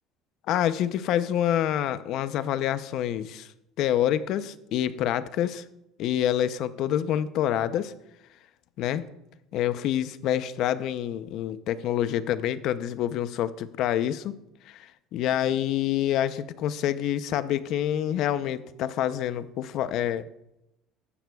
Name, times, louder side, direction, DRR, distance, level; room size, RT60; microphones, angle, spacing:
voice 1, 0.5-3.5 3.8-5.6 6.0-7.9 8.8-9.1 9.5-14.4 14.7-20.2, left 11 dB, 60° left, 14 dB, 0.6 m, -27 dB
14.5 x 11.0 x 2.3 m, 0.87 s
cardioid pair, 120°, 0 cm